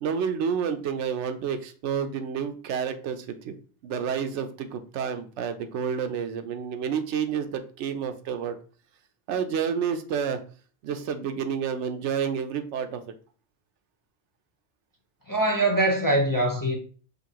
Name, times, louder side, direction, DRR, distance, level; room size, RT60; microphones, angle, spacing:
voice 1, 0.0-3.6 3.8-8.6 9.3-10.4 10.8-13.0, right 7 dB, 80° right, 0.9 m, -29 dB
voice 2, 15.3-16.7, right 1 dB, 25° left, 0.5 m, -23 dB
5.4 x 2.6 x 2.8 m
omnidirectional pair, 1.2 m